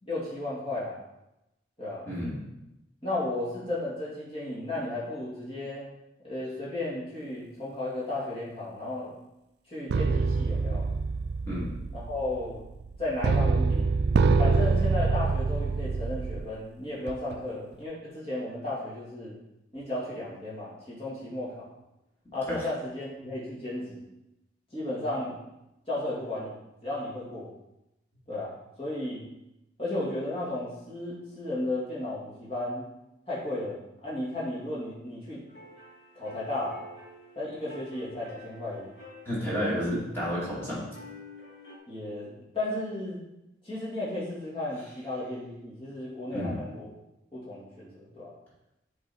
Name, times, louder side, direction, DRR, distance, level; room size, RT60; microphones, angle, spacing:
voice 1, 0.0-1.0 1.8-2.1 3.0-5.9 6.2-9.1 9.7-10.9 11.9-12.6 13.0-14.0 14.4-19.4 19.7-21.7 22.3-24.1 24.7-25.4 25.9-26.6 26.8-27.5 28.3-29.3 29.8-32.9 33.3-35.4 36.1-36.8 37.4-38.9 39.6-39.8 41.9-43.2 43.6-46.9 47.3-48.3, left 1 dB, 30° left, -7 dB, 2.4 m, -34 dB
voice 2, 2.1-2.4 11.5-11.8 22.5-22.6 39.2-40.9 46.3-46.6, equal, 15° left, -8 dB, 2.4 m, -31 dB
sound 1, 9.9-16.5 17.1-17.4, right 4 dB, 65° right, 0.3 m, -25 dB
sound 2, 35.5-41.8, left 1 dB, 65° left, 2.5 m, -48 dB
7.5 x 3.9 x 4.5 m, 0.90 s
head